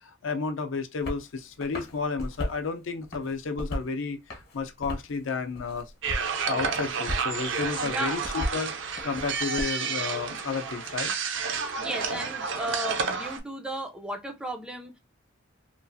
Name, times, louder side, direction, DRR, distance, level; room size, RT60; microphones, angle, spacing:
voice 1, 0.0-4.2 4.5-5.9 6.2-8.7 9.0-11.1, left 4 dB, 75° left, 0.5 m, -32 dB
sound 1, 1.0-1.2 1.6-2.6 3.0-3.9 4.3-5.2 5.6-6.3 6.6-7.3 7.6-9.6, equal, 55° left, 0.9 m, -35 dB
sound 2, 6.0-13.4, right 5 dB, 65° right, 0.5 m, -30 dB
voice 2, 7.8-8.2 11.8-15.0, right 1 dB, 5° right, 0.4 m, -35 dB
3.0 x 2.4 x 2.5 m
head